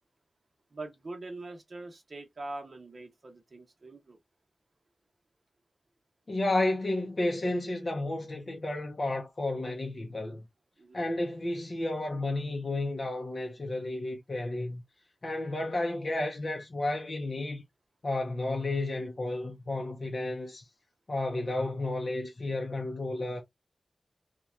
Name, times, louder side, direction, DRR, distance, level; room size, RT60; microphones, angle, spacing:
voice 1, 0.7-4.2 10.8-11.0, right 2 dB, 50° right, 0.8 m, -43 dB
voice 2, 6.3-10.4 10.9-14.8 15.2-17.6 18.0-20.7 21.1-23.4, left 2 dB, 45° left, 0.5 m, -32 dB
2.9 x 2.2 x 2.4 m
wide cardioid pair, 90°, 0 cm